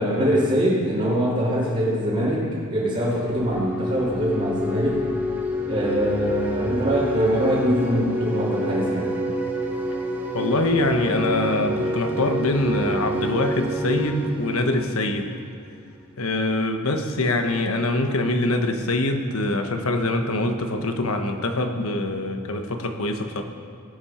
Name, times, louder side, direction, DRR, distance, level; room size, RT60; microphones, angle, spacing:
voice 1, 0.0-5.0 5.7-9.1, equal, 35° right, -11 dB, 2.7 m, -23 dB
sound 1, 3.1-15.8, equal, 10° right, 1.3 m, -28 dB
voice 2, 10.3-15.3 16.2-23.4, left 2 dB, 65° left, 5 dB, 1.2 m, -24 dB
18.5 x 8.8 x 5.7 m, 2.2 s
head